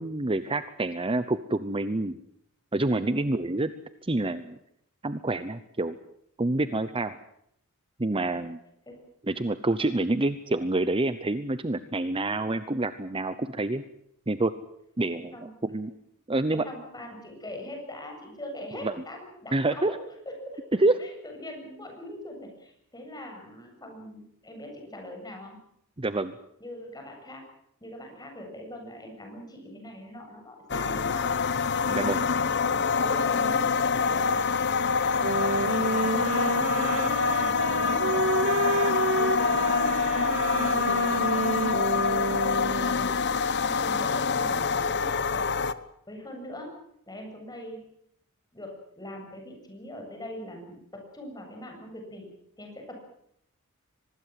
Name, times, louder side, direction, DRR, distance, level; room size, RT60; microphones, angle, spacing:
voice 1, 0.0-2.2 2.7-3.7 4.0-4.6 5.0-6.0 6.4-7.2 8.0-8.6 9.3-13.8 14.3-14.5 15.0-15.4 15.6-15.9 16.3-16.6 18.8-18.9 19.5-19.9 20.8-20.9 26.0-26.3 31.9-32.2, right 2 dB, 25° right, 12 dB, 0.8 m, -27 dB
voice 2, 2.9-3.3 8.3-8.5 8.9-9.0 15.1-15.5 16.5-19.9 20.3-20.6 21.0-25.6 26.6-27.4 27.8-31.3 31.8-34.5 35.7-40.0 40.5-43.1 43.6-45.5 46.1-46.8 47.1-47.8 48.5-52.3 52.6-53.0, left 1 dB, 20° left, 3 dB, 7.7 m, -42 dB
sound 1, 30.7-45.7, left 5 dB, 50° left, 1.0 m, -26 dB
sound 2, 35.2-43.2, right 3 dB, 65° right, 2.2 m, -29 dB
24.0 x 20.5 x 7.7 m, 0.73 s
head